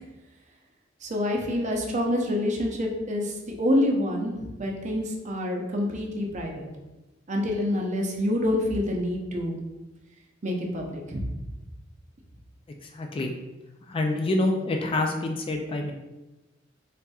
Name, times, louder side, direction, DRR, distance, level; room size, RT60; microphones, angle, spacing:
voice 1, 1.0-6.7 7.3-9.6 10.4-11.2, left 1 dB, 40° right, 1 dB, 0.6 m, -27 dB
voice 2, 12.9-13.3 13.9-15.9, left 2 dB, 25° left, 2 dB, 0.3 m, -26 dB
4.1 x 3.4 x 2.3 m, 1.0 s
head